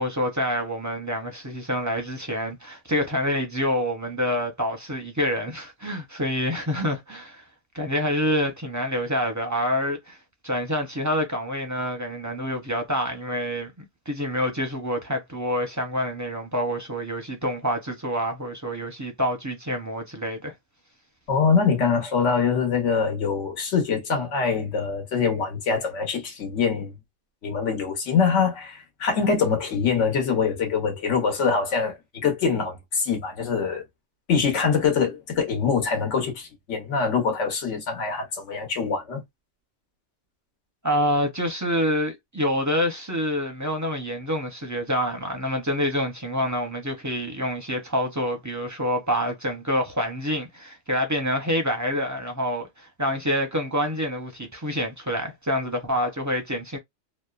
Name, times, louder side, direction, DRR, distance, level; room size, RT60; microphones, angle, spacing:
voice 1, 0.0-7.4 7.7-10.2 10.4-20.5 40.8-56.8, equal, 25° right, 0.4 m, -27 dB
voice 2, 21.3-26.9 27.4-33.8 34.3-39.2, left 5 dB, 85° left, 1.3 m, -24 dB
2.9 x 2.0 x 2.3 m
omnidirectional pair, 1.2 m